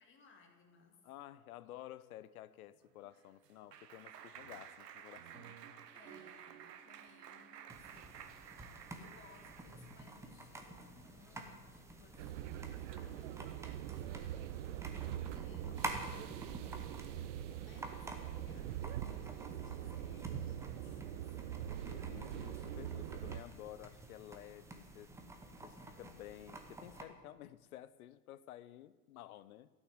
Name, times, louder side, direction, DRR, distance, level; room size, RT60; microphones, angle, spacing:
voice 1, 0.0-1.1 5.9-8.3 8.9-14.7 15.3-21.4, left 5 dB, 25° left, 3 dB, 2.0 m, -64 dB
voice 2, 1.0-5.6 17.5-17.7 21.8-25.1 25.6-29.7, left 13 dB, 60° left, 17 dB, 0.7 m, -53 dB
Clapping, 2.9-10.1, right 9 dB, 80° right, 1.0 m, -53 dB
sound 1, 7.7-27.0, right 2 dB, 5° right, 0.8 m, -50 dB
sound 2, 12.2-23.4, right 11 dB, 50° right, 0.6 m, -43 dB
12.5 x 6.2 x 8.0 m, 1.4 s
hypercardioid pair, 120°, 48 cm